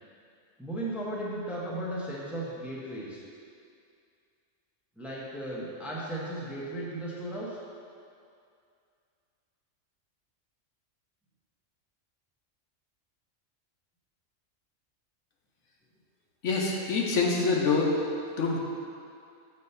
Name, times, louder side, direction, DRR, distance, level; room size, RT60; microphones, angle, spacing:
voice 1, 0.6-3.2 5.0-7.6, right 1 dB, ahead, -5 dB, 0.9 m, -35 dB
voice 2, 16.4-17.9 18.4-18.6, left 4 dB, 75° left, -1 dB, 1.1 m, -25 dB
6.6 x 4.1 x 5.5 m, 2.4 s
omnidirectional pair, 1.3 m